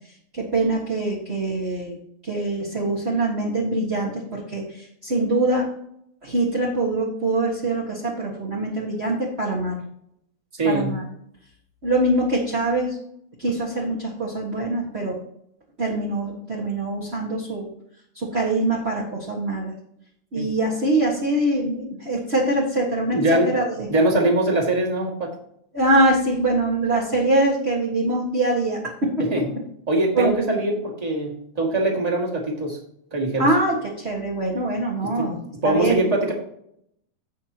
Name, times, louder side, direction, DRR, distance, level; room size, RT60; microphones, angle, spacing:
voice 1, 0.3-1.9 2.2-5.7 6.2-9.8 10.6-11.0 11.8-13.0 13.4-15.2 15.8-17.7 18.1-19.7 20.3-23.9 25.7-28.8 30.1-30.3 33.4-35.4 35.6-36.0, right 2 dB, 30° right, -5 dB, 1.2 m, -23 dB
voice 2, 10.6-11.0 20.3-20.5 23.1-23.5 23.9-25.3 29.2-29.5 29.9-32.8 33.1-33.5 35.0-35.3 35.6-36.3, right 1 dB, 15° right, -2 dB, 1.6 m, -22 dB
16.0 x 6.0 x 2.9 m, 0.72 s
omnidirectional pair, 3.6 m